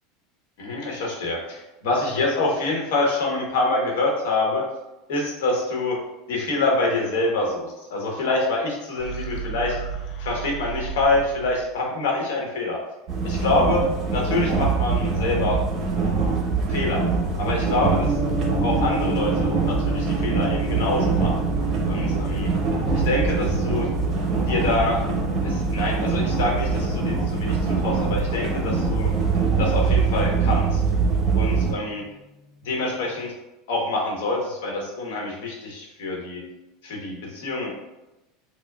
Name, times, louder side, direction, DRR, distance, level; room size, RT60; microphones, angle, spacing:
voice 1, 0.6-4.6 5.1-6.0 6.3-9.8 10.2-12.8 13.2-13.8 14.1-15.6 16.7-17.0 17.4-18.2 18.6-21.3 21.9-22.5 22.9-23.9 24.5-25.0 25.4-27.6 27.8-29.1 29.6-30.8 31.4-32.0 32.6-33.3 33.7-36.4 36.8-37.7, left 2 dB, 75° left, -1 dB, 1.1 m, -26 dB
sound 1, 9.0-11.8, right 8 dB, 50° left, 0.6 m, -33 dB
sound 2, 13.1-31.7, right 4 dB, 45° right, 0.7 m, -23 dB
Gong, 18.0-32.2, right 3 dB, ahead, 0.5 m, -33 dB
4.6 x 2.2 x 2.3 m, 0.99 s
supercardioid pair, 105°, 0 cm